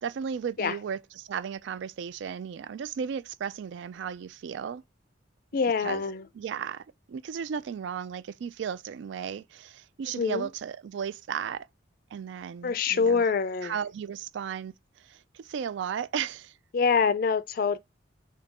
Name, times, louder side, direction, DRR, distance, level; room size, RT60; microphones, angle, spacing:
voice 1, 0.0-4.8 5.8-6.0 6.3-11.7 12.1-13.3 13.6-16.5, right 7 dB, 65° right, 0.3 m, -35 dB
voice 2, 5.5-6.2 10.2-10.5 12.6-13.7 16.7-17.8, left 5 dB, 45° left, 0.3 m, -25 dB
3.8 x 2.7 x 3.5 m
head